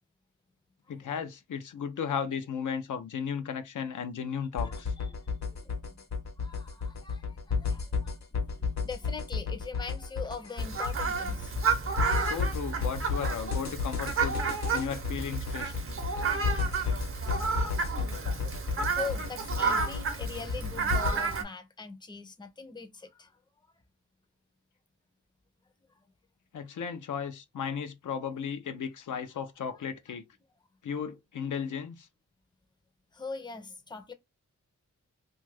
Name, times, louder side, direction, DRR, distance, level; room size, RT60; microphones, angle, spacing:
voice 1, 0.9-4.9 12.2-14.4 14.7-15.7 26.5-30.2 30.8-32.1, left 7 dB, 80° left, 0.5 m, -35 dB
sound 1, 4.6-21.1, left 5 dB, 65° left, 0.9 m, -32 dB
voice 2, 4.6-6.0 6.4-11.7 17.9-18.1 18.9-23.3 33.1-34.1, left 4 dB, 15° left, 0.5 m, -42 dB
Fowl, 10.6-21.4, right 5 dB, 45° right, 0.7 m, -31 dB
2.6 x 2.4 x 3.2 m
wide cardioid pair, 85°, 30 cm